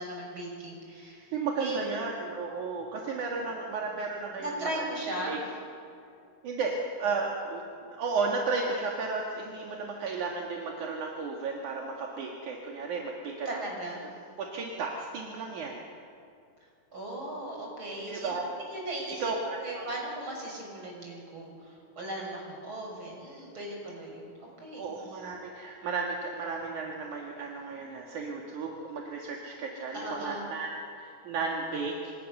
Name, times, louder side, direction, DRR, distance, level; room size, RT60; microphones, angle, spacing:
voice 1, 0.0-1.3 1.6-2.0 4.4-5.4 13.5-14.0 16.9-18.3 18.6-24.8 29.9-30.4, right 1 dB, 35° right, -1 dB, 7.3 m, -37 dB
voice 2, 1.3-5.4 6.4-13.6 14.4-15.8 18.1-18.4 19.1-19.9 24.8-32.1, right 4 dB, 70° right, 0 dB, 3.4 m, -34 dB
27.5 x 26.0 x 6.8 m, 2.4 s
omnidirectional pair, 3.7 m